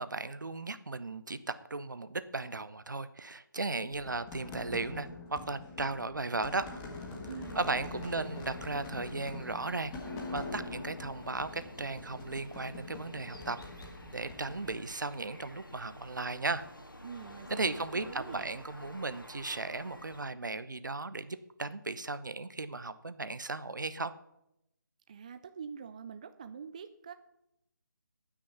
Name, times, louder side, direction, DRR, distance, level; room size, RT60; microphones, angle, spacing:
voice 1, 0.0-1.4 1.7-6.7 7.5-9.9 10.3-13.6 14.1-16.7 17.5-24.1, right 3 dB, 65° right, 13 dB, 0.9 m, -36 dB
sound 1, 3.9-14.8, left 2 dB, 15° left, 1.4 m, -44 dB
voice 2, 7.3-8.3 17.0-18.5 25.1-27.1, right 6 dB, 20° right, 9 dB, 0.3 m, -45 dB
sound 2, 7.4-20.2, left 1 dB, 85° left, 2.0 m, -51 dB
17.5 x 6.3 x 5.7 m, 0.84 s
figure-of-eight pair, 150°, 11 cm